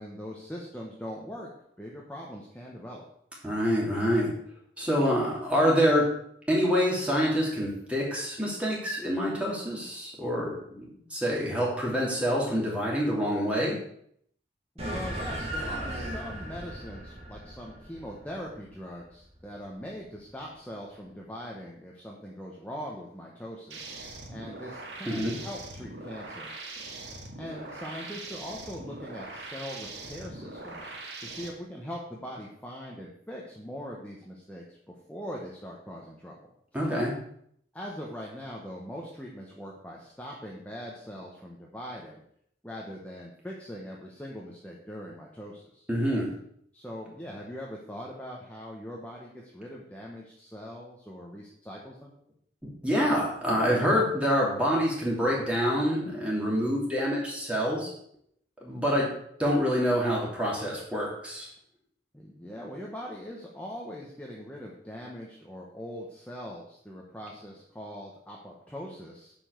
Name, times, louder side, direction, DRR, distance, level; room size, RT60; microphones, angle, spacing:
voice 1, 0.0-1.5 1.8-3.1 14.7-23.9 24.3-26.8 27.4-30.9 31.2-36.4 36.7-36.8 37.7-42.2 42.6-45.9 46.7-52.1 62.1-69.3, equal, 10° left, -3 dB, 1.2 m, -41 dB
voice 2, 3.4-4.3 4.8-6.0 6.5-13.8 25.1-25.3 36.7-37.1 45.9-46.3 52.8-57.9 58.6-59.1 59.4-61.5, equal, 5° right, -4 dB, 2.9 m, -26 dB
sound 1, 14.8-19.5, right 1 dB, 35° right, 2.3 m, -37 dB
sound 2, 23.7-31.5, right 2 dB, 70° right, 2.0 m, -42 dB
9.6 x 5.4 x 6.5 m, 0.69 s
head